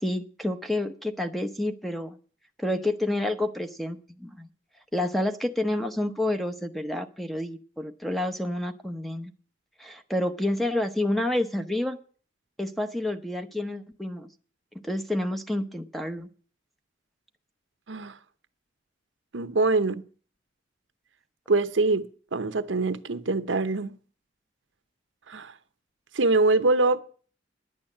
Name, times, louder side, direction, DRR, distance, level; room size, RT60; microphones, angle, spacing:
voice 1, 0.0-2.2 2.6-4.5 4.9-9.3 9.8-12.0 12.6-14.3 14.8-16.3, left 1 dB, ahead, 0.8 m, -29 dB
voice 2, 19.3-20.0 21.5-24.0 25.3-25.5 26.1-27.0, right 3 dB, 85° right, 0.8 m, -24 dB
11.0 x 8.7 x 7.3 m
head